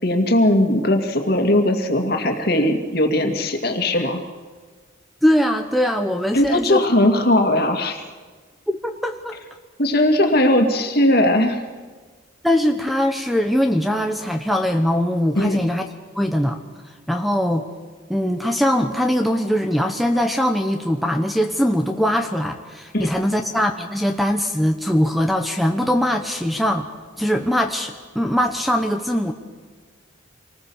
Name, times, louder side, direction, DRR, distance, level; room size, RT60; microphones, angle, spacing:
voice 1, 0.0-4.2 6.3-8.0 9.8-11.6 15.4-15.6 22.9-23.1, left 1 dB, 50° left, 5 dB, 2.4 m, -19 dB
voice 2, 5.2-6.8 8.8-9.4 12.4-15.8 16.1-16.6 17.1-17.6 18.1-26.9 27.2-29.3, equal, ahead, 5 dB, 1.1 m, -21 dB
26.5 x 19.5 x 7.2 m, 1.4 s
head